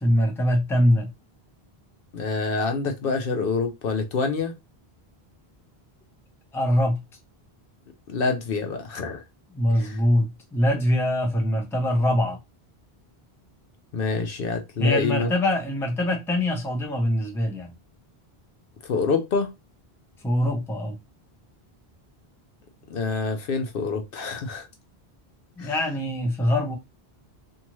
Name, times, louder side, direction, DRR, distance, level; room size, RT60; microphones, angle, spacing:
voice 1, 0.0-1.1 6.5-7.0 9.5-12.4 14.8-17.7 20.2-21.0 25.6-26.8, left 1 dB, 5° left, 0.6 m, -23 dB
voice 2, 2.1-4.5 8.1-9.2 9.8-10.0 13.9-15.3 18.8-19.5 22.9-24.7 25.6-25.7, left 4 dB, 65° left, 0.8 m, -26 dB
2.7 x 2.4 x 3.0 m
omnidirectional pair, 1.0 m